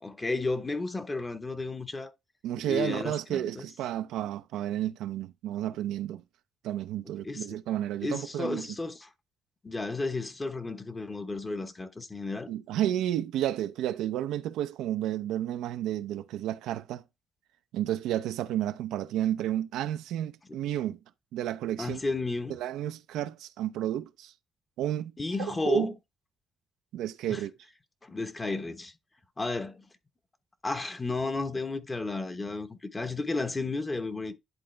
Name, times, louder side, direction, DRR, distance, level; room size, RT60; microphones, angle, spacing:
voice 1, 0.0-2.1 2.7-3.6 7.2-7.4 8.0-9.1 9.6-12.5 21.8-22.6 25.2-25.9 27.3-27.4 28.0-28.9 29.4-29.8 30.6-34.3, left 3 dB, 25° left, 1.0 m, -32 dB
voice 2, 2.4-6.2 6.6-8.7 12.5-17.0 17.7-21.0 21.3-22.0 22.5-24.3 24.8-25.1 25.4-25.9 26.9-27.5, right 12 dB, 90° right, 0.6 m, -31 dB
10.5 x 3.9 x 3.3 m
cardioid pair, 90°, 0 cm